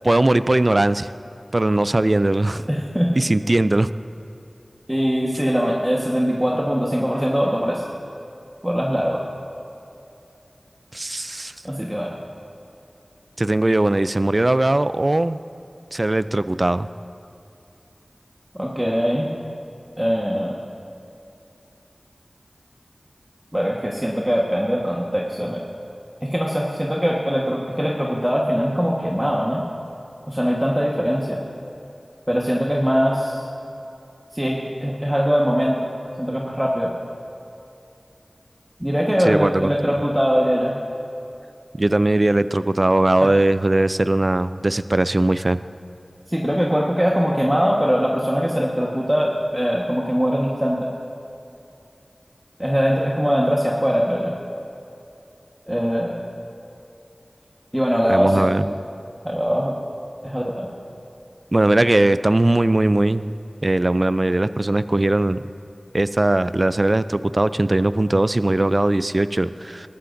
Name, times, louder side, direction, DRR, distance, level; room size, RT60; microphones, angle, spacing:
voice 1, 0.0-1.1 1.5-2.6 3.2-3.9 10.9-11.5 13.4-15.4 15.9-16.9 39.3-39.9 41.8-45.6 58.1-58.8 61.5-63.3 63.6-65.4 65.9-69.9, right 2 dB, 40° right, 14 dB, 0.3 m, -19 dB
voice 2, 2.7-3.1 4.9-7.8 8.6-9.2 11.6-12.1 18.6-19.3 20.0-20.6 23.5-25.6 26.2-29.6 30.3-31.4 32.3-33.4 34.3-35.9 36.2-36.9 38.8-40.7 43.2-43.3 46.3-50.9 52.6-54.3 55.7-56.2 57.7-58.5 59.2-59.8 60.2-60.7, equal, 10° right, -3 dB, 1.3 m, -21 dB
19.5 x 13.5 x 2.6 m, 2.7 s
wide cardioid pair, 50°, 0 cm